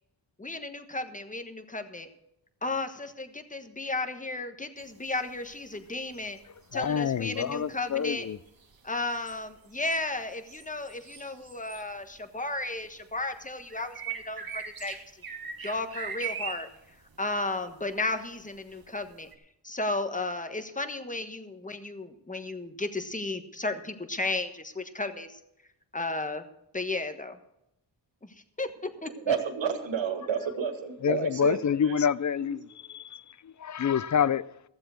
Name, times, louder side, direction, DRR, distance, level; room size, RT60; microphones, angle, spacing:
voice 1, 0.4-2.1 2.6-6.4 6.7-8.3 8.8-15.0 15.6-16.7 17.2-19.3 19.6-25.3 25.9-26.4 26.7-27.3 28.6-29.1, left 2 dB, 15° left, 1.3 m, -34 dB
sound 1, 4.8-5.8 6.0-12.4 12.6-19.4, right 6 dB, 50° right, 1.7 m, -41 dB
voice 2, 6.7-8.4 31.0-32.6 32.9-33.0 33.6-34.4, left 7 dB, 40° left, 0.5 m, -26 dB
voice 3, 29.0-32.0 32.4-32.6, right 7 dB, 85° right, 1.8 m, -31 dB
15.0 x 7.6 x 6.3 m
cardioid pair, 70°, 44 cm